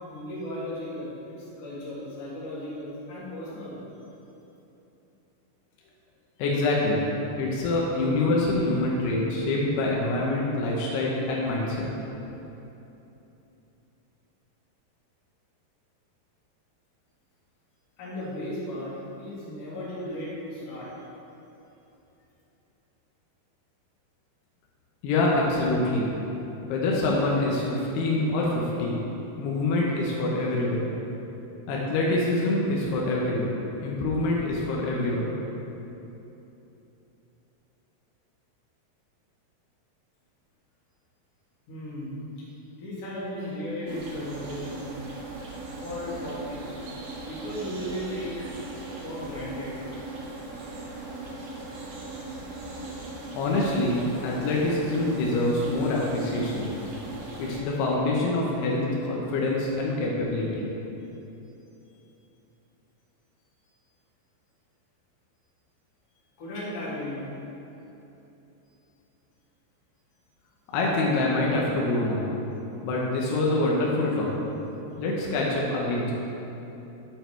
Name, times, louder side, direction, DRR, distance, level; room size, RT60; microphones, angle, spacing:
voice 1, 0.0-3.8 18.0-20.9 41.7-42.5 42.8-45.0 45.8-46.6 47.3-49.8 52.2-52.4 53.0-53.3 66.4-67.3, left 1 dB, 40° left, -9 dB, 2.8 m, -36 dB
voice 2, 6.4-7.0 7.4-11.9 25.0-26.1 26.7-29.0 29.4-30.9 31.7-33.5 33.8-35.3 53.3-56.7 57.4-60.7 70.7-72.3 72.8-74.3 75.0-76.1, left 2 dB, 80° left, -3 dB, 3.1 m, -25 dB
sound 1, 43.9-57.6, right 2 dB, 70° right, 1.5 m, -39 dB
10.5 x 6.8 x 4.5 m, 3.0 s
omnidirectional pair, 4.7 m